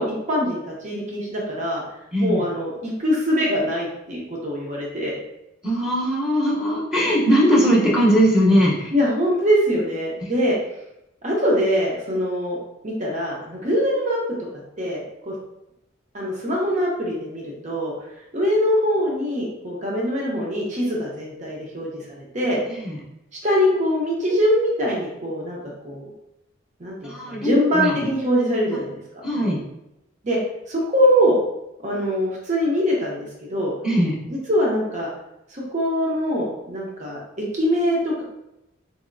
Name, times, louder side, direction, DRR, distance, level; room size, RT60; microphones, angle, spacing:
voice 1, 0.0-1.8 2.2-5.1 8.9-10.5 11.2-12.6 12.8-14.2 14.8-15.3 16.1-17.9 18.3-22.6 23.4-25.6 25.8-26.0 26.8-28.9 30.2-30.4 30.7-31.4 31.8-33.7 34.3-35.1 35.5-37.2 37.5-38.2, equal, 35° right, -3 dB, 0.7 m, -23 dB
voice 2, 2.1-2.4 5.6-8.9 22.8-23.0 27.0-28.1 29.2-29.6 33.8-34.2, equal, 5° right, -6 dB, 0.8 m, -19 dB
4.1 x 2.7 x 2.5 m, 0.86 s
head